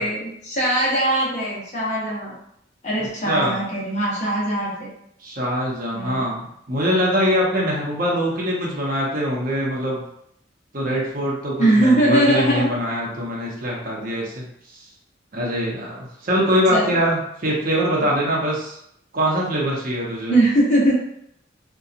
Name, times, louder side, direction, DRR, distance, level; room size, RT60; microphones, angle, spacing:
voice 1, 0.0-2.3 2.8-4.9 5.9-6.2 11.6-12.7 16.7-17.0 20.3-21.0, right 1 dB, 40° left, -6 dB, 0.7 m, -20 dB
voice 2, 3.2-3.6 5.2-10.0 10.7-14.4 14.7-14.9 15.3-18.8 19.1-20.4, equal, 50° right, -3 dB, 0.7 m, -23 dB
2.7 x 2.2 x 2.4 m, 0.74 s
head